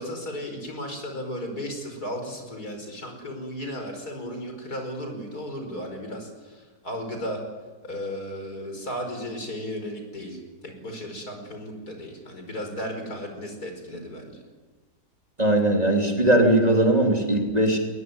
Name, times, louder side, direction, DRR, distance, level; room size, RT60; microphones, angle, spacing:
voice 1, 0.0-7.4 7.8-14.4, equal, 60° left, 4 dB, 5.7 m, -35 dB
voice 2, 15.4-17.8, right 1 dB, 20° right, 1 dB, 3.3 m, -20 dB
21.5 x 20.5 x 9.5 m, 1.3 s
omnidirectional pair, 1.8 m